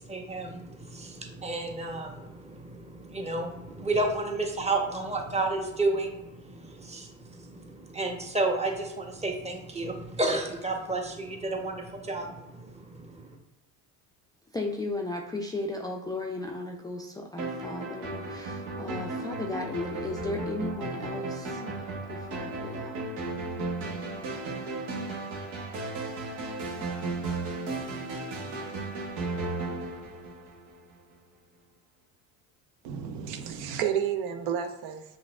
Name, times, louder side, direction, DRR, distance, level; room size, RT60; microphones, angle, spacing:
voice 1, 0.0-13.4, right 2 dB, 15° right, 2 dB, 0.9 m, -32 dB
voice 2, 14.5-23.0, left 2 dB, 10° left, 0 dB, 0.4 m, -35 dB
sound 1, 17.4-30.9, right 2 dB, 80° right, 1.0 m, -35 dB
voice 3, 32.8-35.0, right 8 dB, 60° right, 7 dB, 0.6 m, -31 dB
5.7 x 2.5 x 2.3 m, 0.96 s
hypercardioid pair, 70°, 42 cm